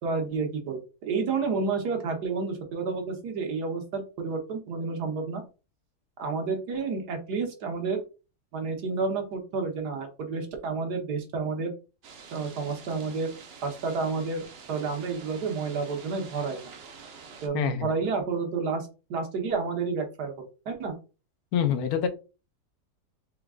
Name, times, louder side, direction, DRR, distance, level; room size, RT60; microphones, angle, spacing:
voice 1, 0.0-5.4 6.2-8.0 8.5-11.7 12.3-13.3 13.6-16.7 17.4-20.9, right 4 dB, 90° right, 1.6 m, -30 dB
sound 1, 12.0-17.5, right 5 dB, 55° right, 0.7 m, -47 dB
voice 2, 17.5-17.9 21.5-22.1, left 9 dB, 70° left, 1.0 m, -26 dB
4.4 x 3.6 x 2.3 m
omnidirectional pair, 1.7 m